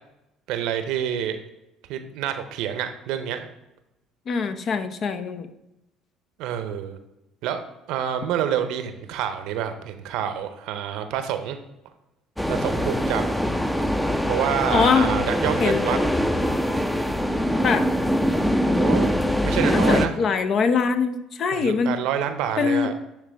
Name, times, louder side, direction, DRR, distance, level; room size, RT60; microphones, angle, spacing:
voice 1, 0.5-1.4 1.9-3.5 6.4-7.0 7.4-7.6 7.9-11.6 12.5-13.2 14.3-16.0 18.7-19.1 19.4-20.1 21.5-22.9, right 9 dB, 75° right, 9 dB, 0.6 m, -27 dB
voice 2, 4.3-5.5 14.7-15.1 15.6-16.0 17.6-17.9 19.7-21.9 22.6-22.9, left 5 dB, 50° left, 11 dB, 0.6 m, -23 dB
sound 1, 12.4-20.1, equal, 5° left, 0.5 m, -23 dB
9.7 x 3.4 x 3.4 m, 0.92 s
supercardioid pair, 75°, 0 cm